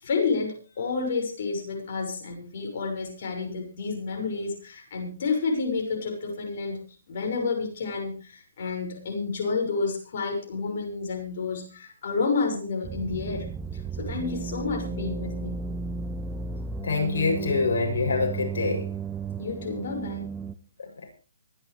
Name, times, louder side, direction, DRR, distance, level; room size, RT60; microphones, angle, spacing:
voice 1, 0.0-6.8 7.1-13.4 13.7-15.6 19.4-20.2, left 4 dB, 55° left, 2 dB, 6.3 m, -30 dB
sound 1, 12.8-20.6, right 5 dB, 10° right, 0.7 m, -34 dB
voice 2, 16.8-18.9 20.8-21.1, left 4 dB, 70° left, 2 dB, 7.5 m, -26 dB
24.5 x 11.5 x 3.4 m, 0.35 s
hypercardioid pair, 150°, 0 cm